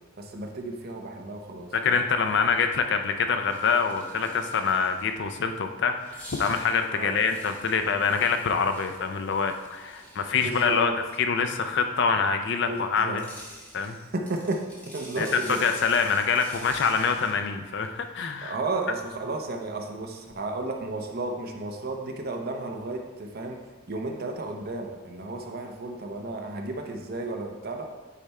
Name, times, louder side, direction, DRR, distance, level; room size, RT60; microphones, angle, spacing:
voice 1, 0.2-2.1 6.9-7.2 10.3-10.9 12.6-13.2 13.8-15.6 18.4-23.6 23.9-27.8, right 2 dB, 50° right, 2 dB, 0.8 m, -33 dB
voice 2, 1.7-10.9 11.2-13.2 13.7-14.0 15.2-15.3 15.6-18.6, left 5 dB, 60° left, 7 dB, 0.5 m, -25 dB
sound 1, 3.4-5.2 6.0-10.8 12.9-17.3, equal, 5° left, 1.4 m, -47 dB
8.4 x 3.5 x 4.3 m, 1.3 s
head